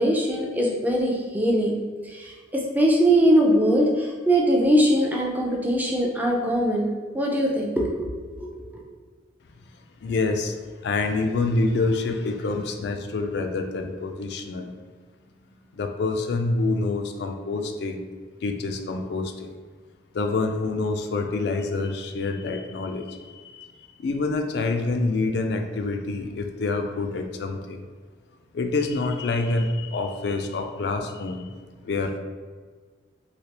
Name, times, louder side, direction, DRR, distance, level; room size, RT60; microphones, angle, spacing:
voice 1, 0.0-8.1 8.4-8.5, equal, 10° right, -1 dB, 0.4 m, -22 dB
voice 2, 10.0-14.7 15.7-18.0 18.4-19.5 20.1-27.8 28.5-31.6 31.8-32.2, left 3 dB, 60° left, 5 dB, 0.3 m, -27 dB
3.2 x 2.8 x 2.8 m, 1.5 s
head